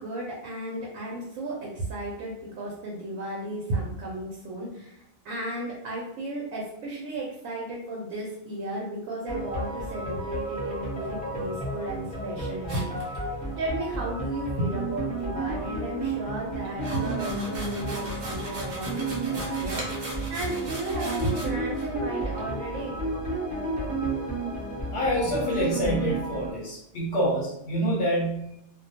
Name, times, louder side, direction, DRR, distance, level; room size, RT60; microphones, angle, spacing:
voice 1, 0.0-13.3 13.6-23.0, right 2 dB, 75° right, -2 dB, 0.9 m, -34 dB
sound 1, 9.3-26.5, right 2 dB, 5° left, 0.7 m, -32 dB
sound 2, 12.7-13.7 16.6-21.5 21.7-21.8 22.4-22.5, right 1 dB, 55° right, 0.5 m, -39 dB
voice 2, 24.9-28.5, equal, 60° left, -5 dB, 0.7 m, -26 dB
2.3 x 2.1 x 2.7 m, 0.78 s
omnidirectional pair, 1.5 m